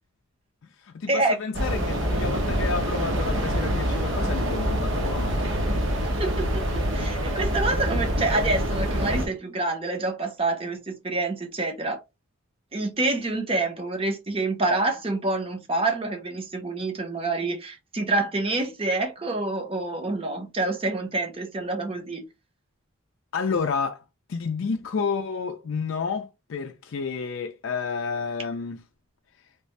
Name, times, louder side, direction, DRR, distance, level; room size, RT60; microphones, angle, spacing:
voice 1, 0.8-5.6 23.3-24.0 24.3-28.8, left 5 dB, 60° left, 0.4 m, -30 dB
sound 1, 1.5-9.3, equal, 55° right, 0.9 m, -26 dB
voice 2, 6.2-12.0 12.7-22.2, right 2 dB, 25° right, 0.8 m, -27 dB
3.2 x 2.6 x 3.1 m
head